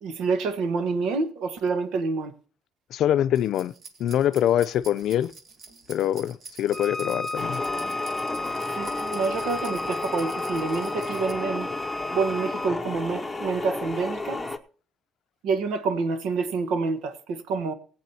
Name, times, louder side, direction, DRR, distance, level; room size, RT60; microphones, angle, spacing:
voice 1, 0.0-2.3 8.7-11.7 12.1-14.4 15.4-17.7, right 4 dB, 85° right, 1.3 m, -27 dB
voice 2, 2.9-3.7 4.0-5.3 5.9-7.6, left 11 dB, 65° left, 0.5 m, -24 dB
sound 1, 3.3-11.3, right 4 dB, 50° right, 1.6 m, -47 dB
Bowed string instrument, 6.7-12.8, left 2 dB, 15° right, 1.3 m, -34 dB
sound 2, 7.4-14.6, left 3 dB, 10° left, 0.9 m, -32 dB
19.0 x 8.6 x 2.8 m
cardioid pair, 140°, 0 cm